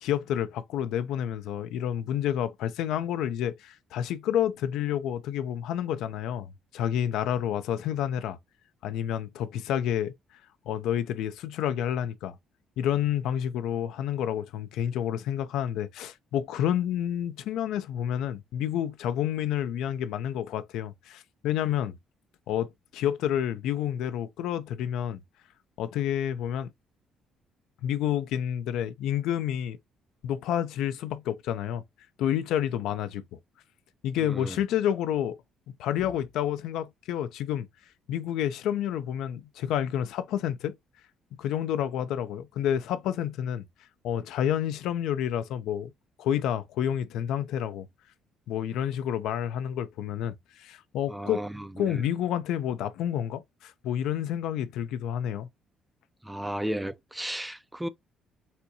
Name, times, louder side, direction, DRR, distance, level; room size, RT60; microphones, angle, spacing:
voice 1, 0.0-8.4 8.8-10.1 10.7-12.4 12.8-22.0 22.5-25.2 25.8-26.7 27.8-29.8 30.2-31.8 32.2-33.4 34.0-35.4 35.8-37.7 38.1-40.8 41.4-43.7 44.0-45.9 46.2-47.9 48.5-51.5 51.8-55.5, left 10 dB, 80° left, 0.4 m, -29 dB
voice 2, 34.2-34.6 51.1-52.0 56.2-57.9, right 1 dB, 10° right, 0.3 m, -34 dB
4.2 x 2.3 x 2.6 m
cardioid pair, 95°, 0 cm